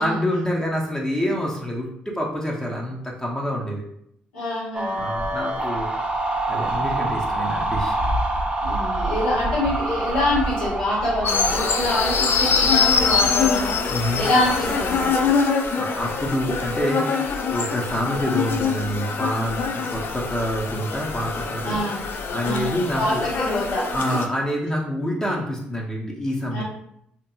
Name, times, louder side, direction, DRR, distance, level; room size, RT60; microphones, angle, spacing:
voice 1, 0.0-3.8 4.9-5.9 6.5-8.0 13.9-14.2 15.7-17.1 17.5-21.8 22.3-23.2 23.9-26.6, equal, 15° left, -2 dB, 0.8 m, -27 dB
voice 2, 4.3-5.0 8.6-15.3 21.6-22.0 22.4-24.2 26.5-26.6, left 1 dB, 85° left, -9 dB, 1.2 m, -26 dB
sound 1, 4.7-13.8, right 1 dB, 25° right, 0.6 m, -26 dB
sound 2, 11.3-24.3, left 5 dB, 55° left, 0.4 m, -24 dB
2.9 x 2.5 x 2.3 m, 0.72 s
hypercardioid pair, 45°, 4 cm